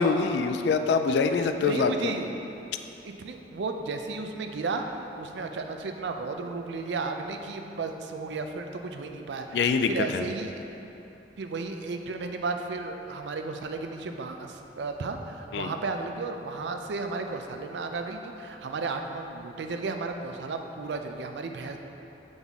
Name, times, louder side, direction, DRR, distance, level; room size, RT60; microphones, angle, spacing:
voice 1, 0.0-2.1 9.5-10.2 15.5-15.7, left 4 dB, 70° left, 8 dB, 0.3 m, -24 dB
voice 2, 1.3-2.4 3.0-4.9 5.2-10.5 11.4-21.8, right 3 dB, 80° right, 5 dB, 0.4 m, -34 dB
7.1 x 3.9 x 3.5 m, 2.9 s
head